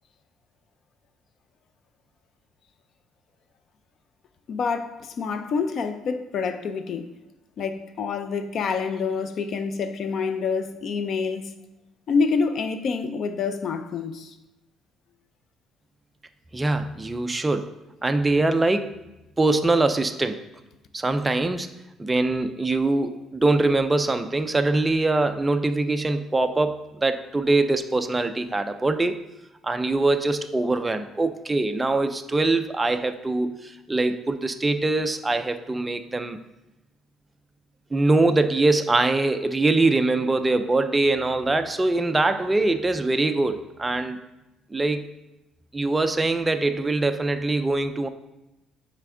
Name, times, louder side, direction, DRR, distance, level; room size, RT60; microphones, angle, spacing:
voice 1, 4.5-7.1 7.6-11.5 12.1-14.3, left 5 dB, 50° left, 0.4 m, -27 dB
voice 2, 16.5-17.7 18.0-18.9 19.4-20.4 20.9-21.7 22.0-29.2 29.6-36.4 37.9-44.2 44.7-45.1 45.7-48.1, right 2 dB, 15° right, 0.3 m, -23 dB
8.4 x 3.3 x 3.7 m
cardioid pair, 145°, 0 cm